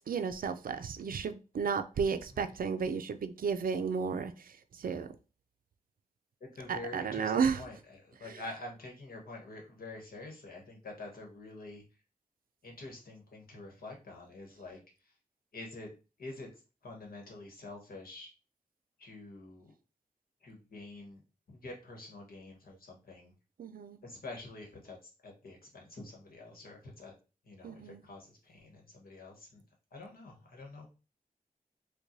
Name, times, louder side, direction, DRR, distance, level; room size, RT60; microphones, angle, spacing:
voice 1, 0.1-5.1 6.7-7.6 8.3-8.4 23.6-24.0 27.6-28.0, right 6 dB, 75° right, 10 dB, 0.4 m, -33 dB
voice 2, 6.4-11.8 12.6-15.1 15.5-18.3 19.0-19.7 20.4-21.2 21.5-23.3 24.0-27.1 27.4-29.6 29.9-30.9, left 2 dB, 80° left, 0 dB, 1.2 m, -47 dB
4.6 x 2.2 x 2.6 m, 0.32 s
cardioid pair, 60°, 15 cm